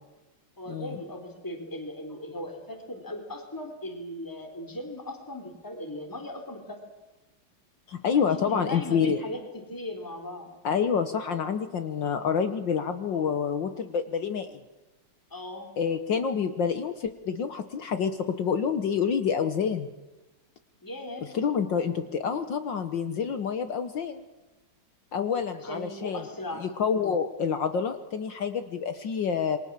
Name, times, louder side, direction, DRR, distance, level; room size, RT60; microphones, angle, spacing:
voice 1, 0.6-6.8 8.1-10.5 13.1-13.3 15.3-15.7 20.8-21.3 21.8-21.9 25.6-26.7, left 1 dB, 10° left, 4 dB, 3.5 m, -38 dB
voice 2, 7.9-9.2 10.6-14.6 15.8-19.9 21.3-24.2 25.1-26.2 26.6-29.6, left 6 dB, 60° left, 9 dB, 1.8 m, -28 dB
28.0 x 23.0 x 7.5 m, 1.1 s
omnidirectional pair, 2.3 m